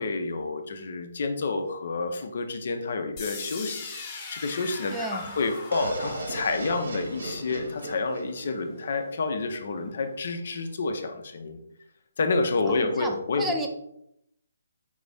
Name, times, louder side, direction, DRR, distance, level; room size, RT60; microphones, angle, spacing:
voice 1, 0.0-11.6 12.2-13.4, left 3 dB, 55° left, 6 dB, 0.6 m, -29 dB
sound 1, 3.2-9.1, left 3 dB, 25° left, 1.1 m, -41 dB
voice 2, 4.9-5.3 12.7-13.7, right 1 dB, 5° right, 2 dB, 0.4 m, -32 dB
sound 2, 5.7-9.5, right 2 dB, 65° right, 0.8 m, -36 dB
5.2 x 2.5 x 3.3 m, 0.76 s
figure-of-eight pair, 145°, 0 cm